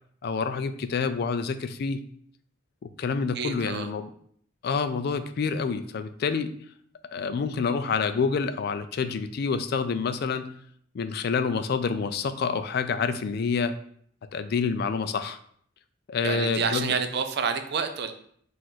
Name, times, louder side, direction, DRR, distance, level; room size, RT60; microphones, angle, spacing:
voice 1, 0.2-2.0 2.8-4.1 4.6-6.5 7.1-10.5 10.9-13.7 14.3-15.4 16.1-17.0, left 5 dB, 50° left, 11 dB, 0.3 m, -27 dB
voice 2, 3.3-3.9 16.2-18.1, right 5 dB, 55° right, 7 dB, 0.5 m, -28 dB
4.5 x 2.5 x 3.9 m, 0.63 s
head